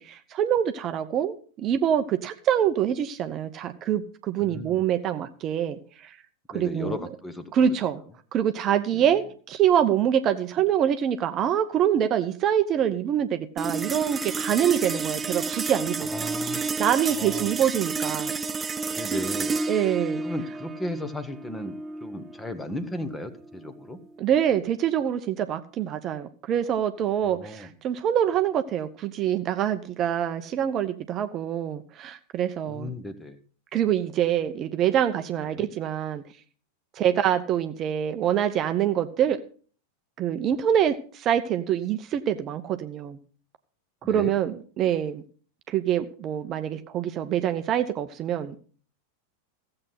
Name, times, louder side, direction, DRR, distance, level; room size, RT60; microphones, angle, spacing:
voice 1, 0.0-6.2 6.5-7.0 7.5-8.0 8.3-16.1 16.8-18.3 19.7-20.2 24.2-32.9 33.7-36.2 37.0-39.4 40.2-43.2 44.1-45.2 45.7-48.6, right 9 dB, 30° right, 9 dB, 0.8 m, -25 dB
voice 2, 4.4-4.8 6.5-7.7 8.9-9.0 16.0-17.6 18.9-19.6 20.2-24.0 27.2-27.7 32.7-33.4 35.4-35.7 44.0-44.3, left 1 dB, 10° left, 12 dB, 1.4 m, -36 dB
sound 1, 13.6-24.2, right 4 dB, 15° right, 0.5 m, -31 dB
15.5 x 7.8 x 5.8 m, 0.43 s
figure-of-eight pair, 90°, 0 cm